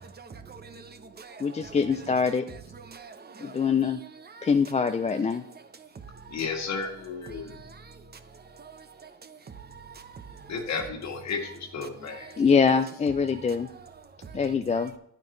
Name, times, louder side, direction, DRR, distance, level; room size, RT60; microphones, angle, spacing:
voice 1, 0.0-1.8 2.8-3.6 4.3-4.5 7.5-7.8 8.6-8.8 9.2-9.3 9.9-10.2, right 5 dB, 35° right, 0.9 m, -46 dB
voice 2, 1.4-2.4 3.4-4.0 4.4-5.4 12.4-13.7 14.3-14.9, left 5 dB, 25° left, 0.4 m, -24 dB
voice 3, 6.3-7.6 10.5-12.3, left 5 dB, 65° left, 1.7 m, -33 dB
9.4 x 9.0 x 3.2 m
cardioid pair, 90°, 30 cm